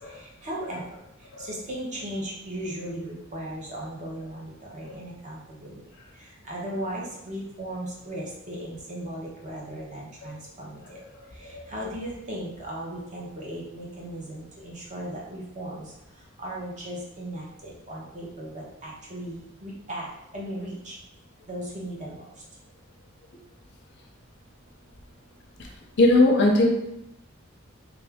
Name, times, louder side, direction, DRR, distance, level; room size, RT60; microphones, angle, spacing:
voice 1, 0.4-0.8 1.5-5.7 6.5-10.8 11.7-15.9 16.4-20.1 20.3-20.9 21.5-22.2, right 1 dB, 35° right, -3 dB, 0.9 m, -36 dB
voice 2, 26.0-26.7, left 2 dB, 55° left, 1 dB, 0.5 m, -19 dB
3.5 x 2.6 x 3.4 m, 0.83 s
head